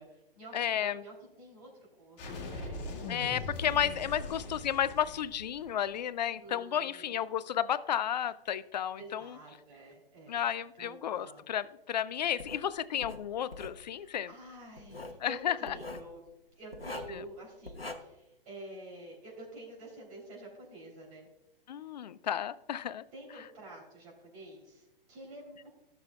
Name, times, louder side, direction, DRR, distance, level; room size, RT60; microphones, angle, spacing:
voice 1, 0.0-2.8 5.9-6.0 6.3-7.1 9.0-10.4 10.8-11.4 13.9-16.2 16.6-21.3 23.1-25.7, right 1 dB, 40° right, -2 dB, 3.3 m, -49 dB
voice 2, 0.5-1.0 3.1-9.3 10.3-14.3 15.2-15.7 17.1-17.2 21.7-23.0, left 10 dB, 50° left, 17 dB, 0.4 m, -32 dB
sound 1, 2.2-5.9, left 2 dB, 30° left, 2.0 m, -41 dB
Writing, 12.4-12.6 13.0-13.8 14.8-15.2 15.7-16.1 16.7-17.2 17.7-17.9, left 2 dB, 90° left, 0.9 m, -42 dB
15.0 x 6.9 x 2.3 m, 0.89 s
figure-of-eight pair, 120°, 29 cm